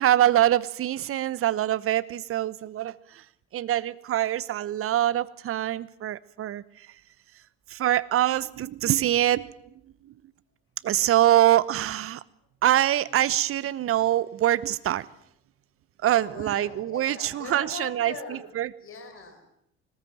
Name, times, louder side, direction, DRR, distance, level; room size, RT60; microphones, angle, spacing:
voice 1, 0.0-2.9 3.5-6.6 7.7-9.5 10.8-12.2 12.6-15.0 16.0-18.7, right 13 dB, 45° right, 18 dB, 0.9 m, -24 dB
voice 2, 16.0-18.4 18.8-19.4, left 5 dB, 40° left, 4 dB, 5.6 m, -40 dB
21.0 x 19.0 x 7.4 m, 0.73 s
figure-of-eight pair, 55°, 31 cm